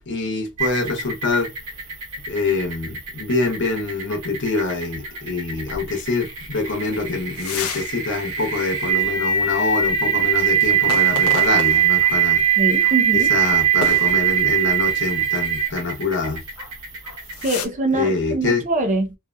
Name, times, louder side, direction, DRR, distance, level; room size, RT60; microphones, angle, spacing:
voice 1, 0.1-1.5 2.3-12.4 13.1-16.4 17.9-18.6, left 3 dB, 60° left, 1.0 m, -25 dB
sound 1, 0.6-17.6, right 8 dB, 85° right, 0.9 m, -22 dB
sound 2, 7.4-7.9 8.4-8.5 10.8-12.2 12.8-13.0 13.8-14.7 16.5-16.7 17.0-17.7, left 5 dB, 90° left, 0.6 m, -31 dB
voice 2, 12.6-13.3 17.4-19.2, right 2 dB, 35° right, 0.6 m, -23 dB
2.6 x 2.6 x 2.3 m
head